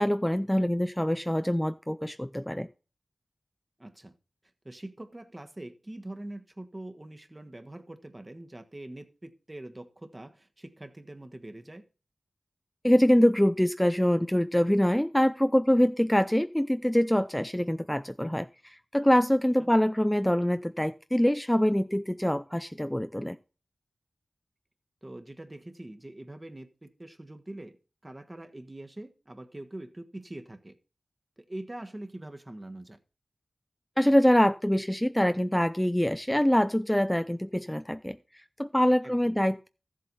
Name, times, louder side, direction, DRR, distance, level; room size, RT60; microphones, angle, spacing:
voice 1, 0.0-2.7 12.8-23.4 34.0-38.2 38.6-39.7, equal, 10° left, 0.4 m, -24 dB
voice 2, 3.8-4.1 4.6-11.8 19.6-19.7 25.0-27.8 28.0-30.8 31.4-33.0 39.0-39.4, right 1 dB, 30° right, 1.3 m, -43 dB
13.5 x 7.7 x 4.1 m
cardioid pair, 40°, 0 cm